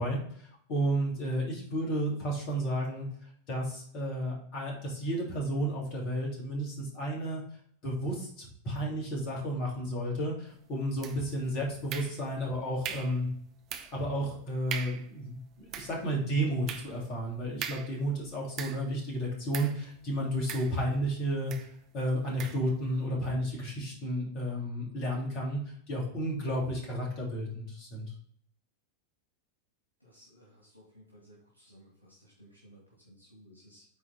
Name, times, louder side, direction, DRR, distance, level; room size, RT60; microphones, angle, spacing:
voice 1, 0.0-3.1 3.5-7.4 7.8-13.3 13.9-21.5 21.9-25.6 25.9-28.1, right 1 dB, 40° left, -2 dB, 3.1 m, -32 dB
sound 1, 11.0-11.4 11.9-12.5 12.8-13.2 13.7-14.1 14.4-14.5 14.7-15.1 15.5-19.0 19.5-19.8 20.5-21.1 21.5-21.7 22.4-22.7, right 9 dB, 35° right, 0.8 m, -40 dB
voice 2, 30.0-33.8, equal, 85° left, -5 dB, 2.4 m, -57 dB
9.1 x 4.1 x 4.1 m, 0.62 s
figure-of-eight pair, 90°, 0 cm